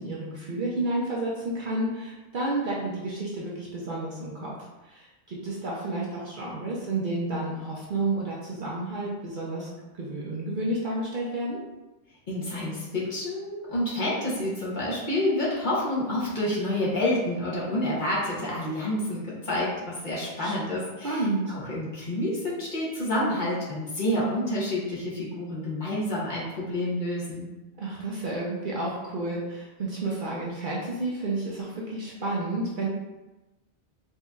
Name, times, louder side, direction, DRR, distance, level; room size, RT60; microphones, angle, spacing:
voice 1, 0.0-4.5 4.8-9.7 9.9-11.6 20.4-20.5 21.0-21.6 27.8-32.9, right 2 dB, 55° right, -5 dB, 0.7 m, -31 dB
voice 2, 12.3-21.2 21.5-27.5, left 1 dB, 45° left, -6 dB, 0.9 m, -28 dB
4.3 x 2.6 x 2.3 m, 1.1 s
omnidirectional pair, 1.2 m